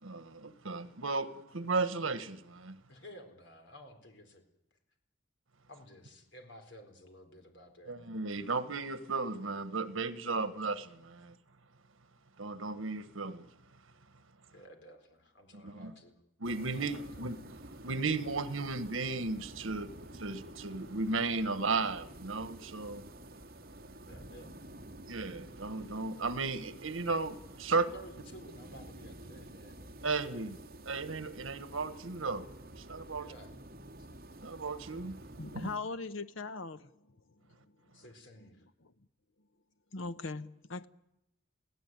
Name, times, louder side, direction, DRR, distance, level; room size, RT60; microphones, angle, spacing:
voice 1, 0.0-2.8 7.9-11.3 12.4-13.5 15.5-15.9 16.4-19.9 20.2-23.0 25.1-27.8 30.0-30.6 30.8-32.5 32.8-33.3 34.4-35.2, right 3 dB, 85° right, 1.4 m, -35 dB
voice 2, 2.9-4.4 5.7-8.1 14.5-16.2 16.7-17.0 24.1-24.8 27.7-30.7 33.2-33.5 34.3-34.4 37.9-38.7, equal, 60° left, 4.2 m, -53 dB
sound 1, 16.4-35.8, right 1 dB, 50° right, 2.1 m, -50 dB
voice 3, 35.4-37.2 37.7-37.8 38.8-38.9 39.9-40.9, left 3 dB, 80° left, 1.0 m, -40 dB
28.5 x 17.0 x 9.3 m
head